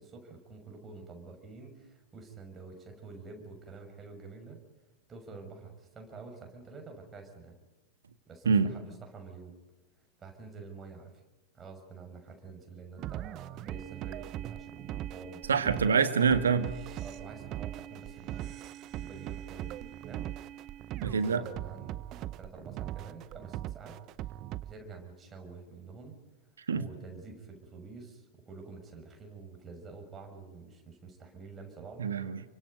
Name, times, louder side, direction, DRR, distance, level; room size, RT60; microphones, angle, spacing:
voice 1, 0.0-4.6 5.1-7.5 8.3-9.6 10.2-11.2 11.5-15.9 17.0-18.5 18.9-20.3 21.0-24.3 24.6-26.2 26.7-32.1, right 4 dB, 20° right, 6.2 m, -48 dB
sound 1, 13.0-24.7, right 13 dB, 35° right, 0.8 m, -40 dB
voice 2, 15.5-16.7 21.0-21.4 26.7-26.9 32.0-32.4, right 5 dB, 70° right, 1.8 m, -26 dB
29.5 x 25.0 x 5.3 m
figure-of-eight pair, 90°, 0 cm